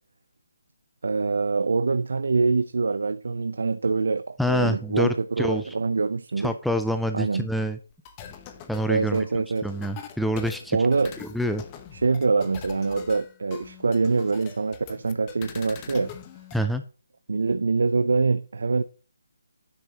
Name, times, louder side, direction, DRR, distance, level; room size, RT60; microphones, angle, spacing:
voice 1, 1.0-5.1 5.4-6.5 7.1-7.5 8.9-9.7 10.7-11.1 12.0-16.1 17.3-18.8, right 4 dB, 75° right, 0.5 m, -24 dB
voice 2, 4.4-5.7 6.4-7.8 8.7-10.9 11.2-11.6 16.5-16.8, equal, ahead, 0.4 m, -27 dB
sound 1, 7.9-16.6, left 9 dB, 20° left, 0.9 m, -43 dB
9.7 x 7.0 x 2.9 m
hypercardioid pair, 165°, 0 cm